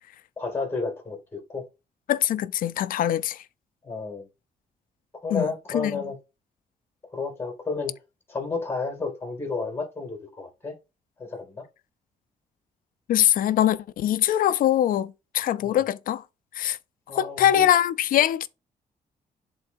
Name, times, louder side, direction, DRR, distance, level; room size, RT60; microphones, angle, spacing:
voice 1, 0.4-1.7 3.8-4.3 5.2-6.2 7.1-8.0 8.3-10.7 11.2-11.6 15.6-15.8 17.1-17.7, left 4 dB, 15° left, 2.4 m, -31 dB
voice 2, 2.1-3.4 5.3-5.5 5.7-6.0 13.1-16.2 16.6-16.8 17.1-18.5, left 11 dB, 70° left, 0.5 m, -23 dB
11.5 x 3.9 x 2.6 m
wide cardioid pair, 175°, 15 cm